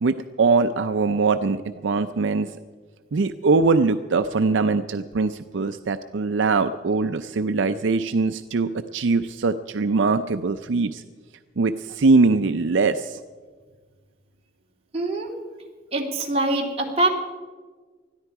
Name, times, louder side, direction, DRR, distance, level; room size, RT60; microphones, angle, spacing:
voice 1, 0.0-2.5 3.1-11.0 11.6-13.2, right 4 dB, 75° right, 9 dB, 0.5 m, -22 dB
voice 2, 14.9-15.3 15.9-17.1, right 2 dB, 35° right, -1 dB, 2.6 m, -23 dB
20.5 x 13.5 x 4.7 m, 1.5 s
head